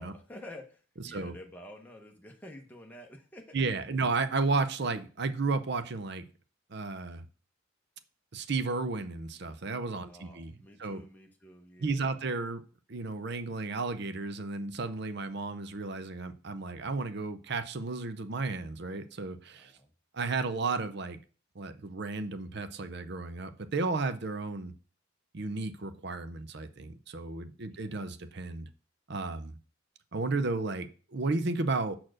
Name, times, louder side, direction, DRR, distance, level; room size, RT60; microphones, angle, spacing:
voice 1, 0.0-3.6 10.1-12.2 19.6-19.9 27.7-28.0, left 1 dB, 10° left, 2 dB, 0.8 m, -50 dB
voice 2, 3.5-6.2 6.7-7.2 8.3-10.5 10.8-11.0 11.8-12.6 12.9-19.7 20.1-21.2 21.6-24.7 25.3-28.7 29.1-29.6 30.1-32.0, right 3 dB, 55° right, 11 dB, 0.6 m, -33 dB
5.9 x 4.4 x 6.3 m, 0.39 s
head